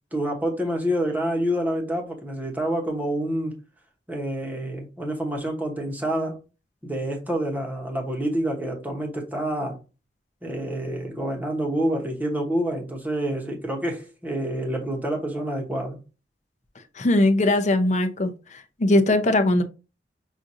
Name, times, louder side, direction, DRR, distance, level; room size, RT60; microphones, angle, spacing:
voice 1, 0.1-3.6 4.1-6.4 6.8-9.8 10.4-16.0, right 1 dB, 10° right, 1.0 m, -27 dB
voice 2, 17.0-19.6, left 1 dB, 40° left, 0.6 m, -20 dB
6.1 x 2.5 x 2.7 m
head